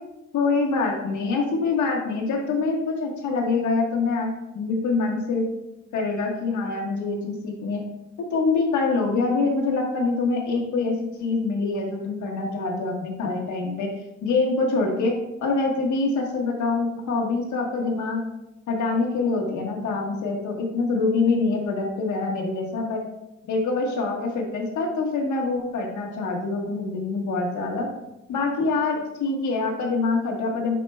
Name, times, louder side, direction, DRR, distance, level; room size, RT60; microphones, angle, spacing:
voice 1, 0.3-5.5 5.9-7.8 8.3-10.9 11.2-13.9 14.2-15.1 15.4-18.2 18.7-23.0 23.5-27.9 28.3-30.8, left 3 dB, 75° left, 0 dB, 1.5 m, -25 dB
9.9 x 4.3 x 2.3 m, 0.92 s
cardioid pair, 90°, 30 cm